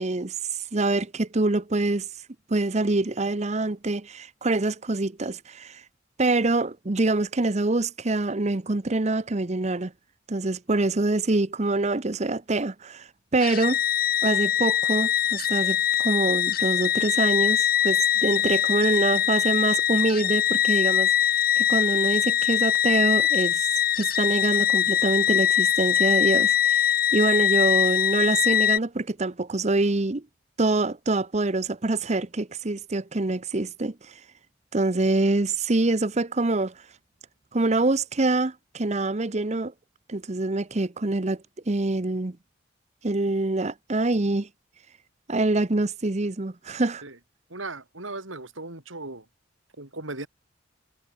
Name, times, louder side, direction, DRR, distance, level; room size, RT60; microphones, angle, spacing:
voice 1, 0.0-2.1 2.5-5.8 6.2-9.9 10.3-13.8 14.2-21.1 21.6-23.7 24.0-26.8 27.1-30.2 30.6-34.1 34.7-36.7 37.5-39.7 40.1-42.4 43.0-44.5 45.3-47.0, right 2 dB, 35° right, 0.8 m, -25 dB
sound 1, 13.4-28.8, left 10 dB, 50° left, 1.2 m, -22 dB
voice 2, 47.5-49.3 49.8-50.3, right 2 dB, 90° right, 5.7 m, -37 dB
head